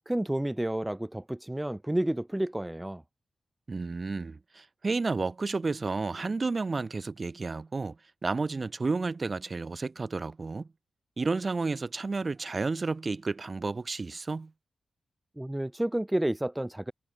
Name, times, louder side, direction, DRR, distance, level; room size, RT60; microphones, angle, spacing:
voice 1, 0.1-3.0 15.4-16.9, right 1 dB, 10° right, 2.3 m, -30 dB
voice 2, 3.7-8.0 8.2-10.7 11.2-14.5, right 3 dB, 30° right, 3.4 m, -31 dB
wide cardioid pair, 140°, 0 cm